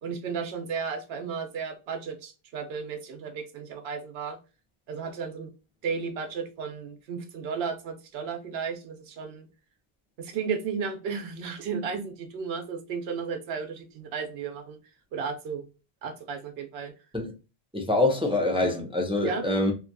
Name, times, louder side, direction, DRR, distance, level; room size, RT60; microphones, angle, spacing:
voice 1, 0.0-4.4 4.9-5.5 5.8-9.5 10.2-14.8 15.1-15.7 16.0-16.9 19.2-19.5, right 6 dB, 80° right, 0.9 m, -34 dB
voice 2, 17.7-19.7, left 2 dB, 10° right, 0.3 m, -25 dB
2.7 x 2.2 x 2.5 m
omnidirectional pair, 1.1 m